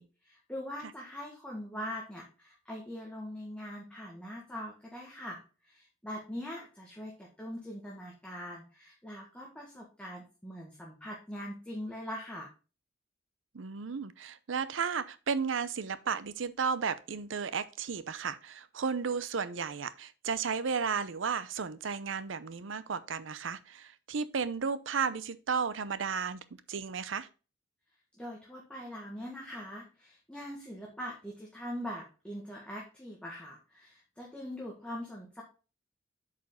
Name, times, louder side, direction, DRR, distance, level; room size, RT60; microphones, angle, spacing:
voice 1, 0.0-12.5 28.2-35.4, equal, 5° left, 1.5 m, -42 dB
voice 2, 13.5-27.3, right 5 dB, 80° right, 0.6 m, -34 dB
8.4 x 5.0 x 3.7 m
head